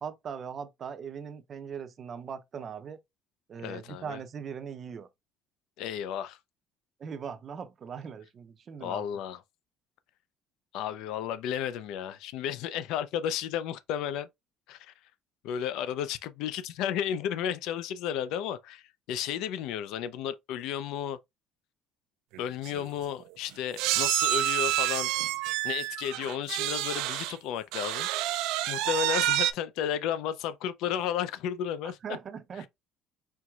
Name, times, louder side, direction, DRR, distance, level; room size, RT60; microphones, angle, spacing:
voice 1, 0.0-3.0 3.5-5.1 7.0-9.0 31.8-32.7, right 7 dB, 30° right, 0.5 m, -40 dB
voice 2, 3.6-4.2 5.8-6.4 8.8-9.4 10.7-14.3 14.7-14.9 15.4-21.2 22.4-25.1 25.6-32.0, left 9 dB, 70° left, 0.5 m, -33 dB
sound 1, 22.3-22.4 22.6-22.8 23.8-27.4 27.7-29.5, right 14 dB, 85° right, 0.4 m, -28 dB
4.5 x 3.9 x 2.3 m
cardioid pair, 165°, 0 cm